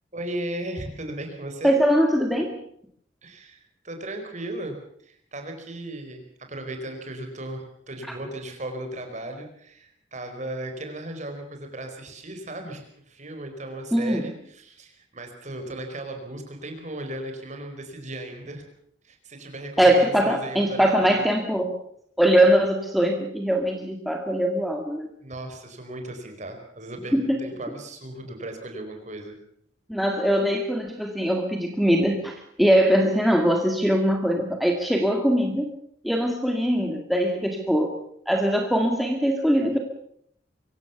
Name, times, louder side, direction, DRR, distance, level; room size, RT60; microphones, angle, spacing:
voice 1, 0.1-1.7 3.2-18.6 19.0-21.2 25.2-29.4, right 1 dB, 40° right, 5 dB, 4.7 m, -36 dB
voice 2, 1.6-2.6 13.9-14.2 19.8-21.7 22.2-25.1 27.1-27.4 29.9-35.7 36.0-38.0 38.3-39.8, equal, ahead, 2 dB, 2.1 m, -22 dB
24.5 x 17.0 x 7.0 m, 0.67 s
head